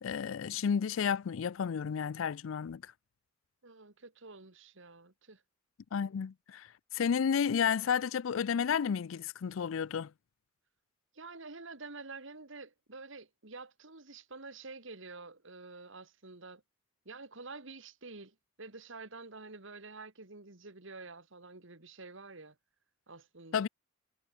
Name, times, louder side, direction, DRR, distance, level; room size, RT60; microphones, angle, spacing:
voice 1, 0.0-2.9 5.9-10.1 23.5-23.7, left 7 dB, 70° left, 0.4 m, -32 dB
voice 2, 3.6-5.4 11.1-16.6 17.1-22.5 23.1-23.6, right 3 dB, 65° right, 2.5 m, -48 dB
head